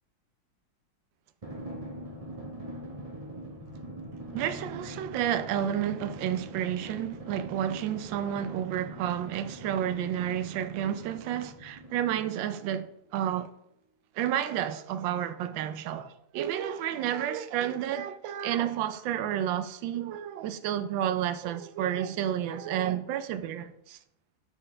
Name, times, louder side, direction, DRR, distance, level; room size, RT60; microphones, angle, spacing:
Drum, 1.4-12.5, right 1 dB, 30° right, 0.7 m, -43 dB
voice 1, 4.3-13.5 14.1-24.0, right 10 dB, 75° right, 1.2 m, -31 dB
11.5 x 4.2 x 3.3 m
omnidirectional pair, 2.3 m